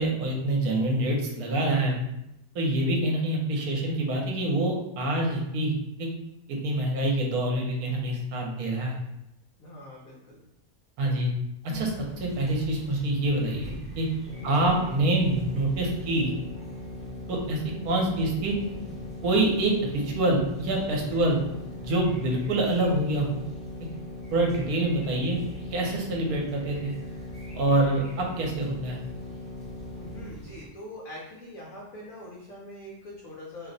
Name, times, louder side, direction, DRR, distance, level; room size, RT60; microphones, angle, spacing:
voice 1, 0.0-2.0 2.5-5.7 6.0-6.1 6.5-9.0 11.0-11.3 11.6-14.1 14.4-16.3 17.3-18.5 19.2-21.4 21.8-23.3 24.3-25.4 25.7-26.9 27.5-29.0, right 1 dB, 75° right, 0 dB, 1.2 m, -26 dB
voice 2, 9.6-10.4 14.4-14.8 21.1-21.4 30.0-33.7, left 1 dB, 70° left, -4 dB, 1.0 m, -43 dB
sound 1, 11.7-30.7, right 1 dB, 10° right, 0.4 m, -45 dB
sound 2, 14.3-30.2, left 2 dB, 45° right, 0.8 m, -40 dB
2.9 x 2.1 x 3.8 m, 0.87 s
omnidirectional pair, 1.6 m